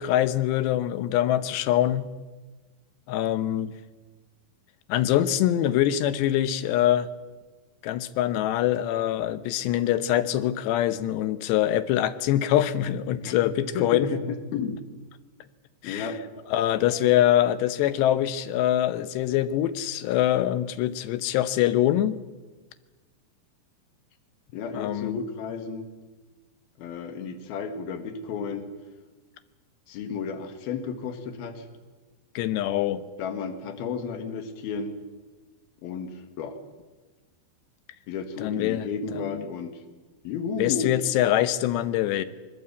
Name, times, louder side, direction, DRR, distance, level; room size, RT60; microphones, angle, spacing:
voice 1, 0.0-2.1 3.1-3.7 4.9-7.1 7.8-14.1 15.8-16.1 16.5-22.2 24.7-25.2 32.4-33.0 38.4-38.8 39.1-39.4 40.6-42.3, left 12 dB, 80° left, 14 dB, 3.1 m, -24 dB
voice 2, 13.2-14.8 15.8-16.2 24.5-25.9 26.8-28.7 29.9-31.7 33.2-35.0 35.8-36.6 38.1-39.8 40.3-41.0, left 5 dB, 65° left, 8 dB, 3.5 m, -33 dB
21.5 x 20.5 x 8.4 m, 1.3 s
omnidirectional pair, 4.9 m